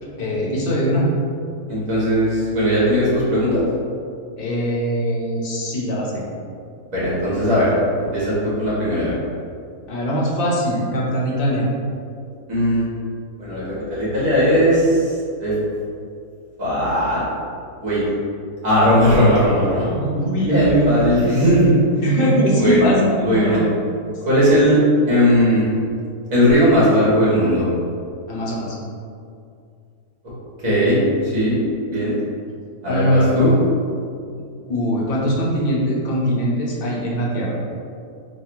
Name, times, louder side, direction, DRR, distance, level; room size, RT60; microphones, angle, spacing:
voice 1, 0.0-1.1 4.4-6.3 9.9-11.6 19.8-20.9 21.2-21.4 22.0-23.6 28.3-28.8 32.9-33.5 34.7-37.6, equal, 45° left, -3 dB, 0.8 m, -21 dB
voice 2, 1.7-3.6 6.9-7.7 8.0-9.1 12.5-12.8 13.4-15.1 15.4-15.5 16.6-17.2 17.8-18.0 18.6-19.9 20.5-21.8 22.6-22.9 23.2-23.6 24.3-24.8 25.1-25.6 26.3-27.7 30.6-31.6 31.9-32.1 32.8-33.5, equal, 60° right, -9 dB, 1.8 m, -18 dB
4.1 x 2.3 x 4.4 m, 2.4 s
omnidirectional pair, 1.7 m